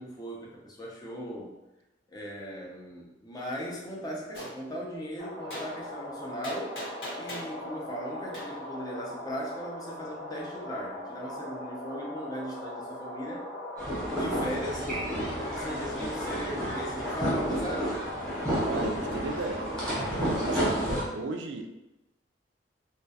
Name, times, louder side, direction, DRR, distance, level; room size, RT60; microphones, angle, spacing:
voice 1, 0.0-1.5 2.1-6.8 7.2-13.4 14.1-14.9 15.3-18.0, equal, 20° left, -3 dB, 0.4 m, -38 dB
Gunshot gunfire, 4.3-4.5 5.5-5.7 6.4-7.5 8.3-8.5, equal, 85° left, 1.2 m, -38 dB
sound 1, 5.2-20.9, left 1 dB, 60° left, 1.0 m, -40 dB
sound 2, 13.8-21.0, right 1 dB, 5° left, 0.8 m, -31 dB
voice 2, 18.5-19.7 20.1-20.8 21.1-21.7, right 3 dB, 70° right, 4 dB, 0.3 m, -35 dB
2.3 x 2.2 x 2.6 m, 0.97 s
head